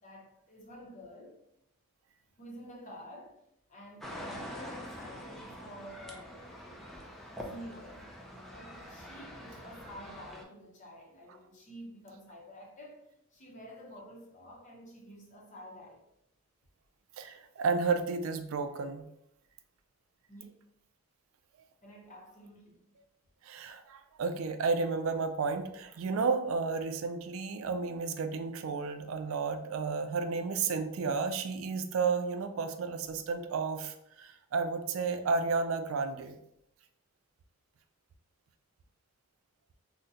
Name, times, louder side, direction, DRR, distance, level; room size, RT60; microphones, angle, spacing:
voice 1, 0.0-1.4 2.4-3.4 3.7-7.1 7.3-8.0 8.5-16.0 20.3-20.4 21.8-22.9, equal, 35° left, 0.7 m, -50 dB
sound 1, 4.0-10.4, equal, ahead, 0.4 m, -45 dB
voice 2, 17.2-19.1 23.4-36.4, right 4 dB, 70° right, 0.4 m, -32 dB
3.7 x 2.1 x 2.7 m
head